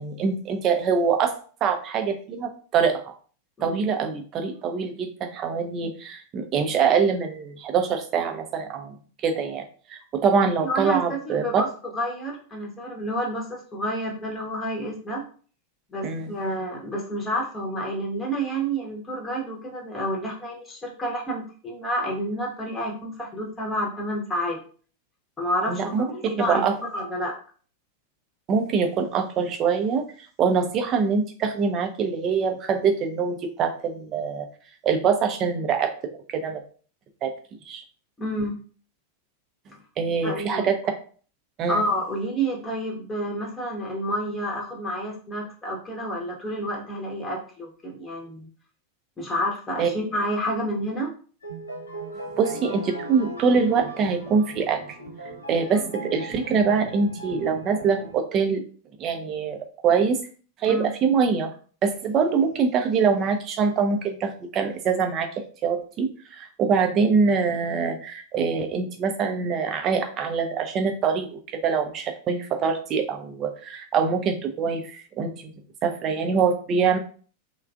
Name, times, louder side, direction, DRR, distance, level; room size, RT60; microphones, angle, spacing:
voice 1, 0.0-1.3 1.6-3.0 3.6-9.0 9.2-9.6 9.9-11.6 16.0-16.3 25.7-26.0 26.4-26.7 28.5-30.0 30.4-34.5 34.8-35.9 36.3-36.6 37.2-37.3 37.7-37.8 40.0-40.8 41.6-41.8 49.8-49.9 52.4-54.8 55.5-58.6 59.0-59.6 59.8-60.2 60.6-61.5 61.8-65.3 65.6-75.3 75.8-77.0, right 5 dB, 35° right, 5 dB, 0.5 m, -24 dB
voice 2, 10.6-11.7 11.9-15.2 15.9-24.6 25.4-27.3 38.2-38.6 40.2-40.7 41.7-48.5 49.2-51.1 60.7-60.9, equal, 15° left, -1 dB, 0.8 m, -29 dB
sound 1, 51.4-58.2, right 2 dB, 80° left, 1.1 m, -38 dB
3.2 x 2.3 x 2.4 m, 0.42 s
figure-of-eight pair, 90°, 0 cm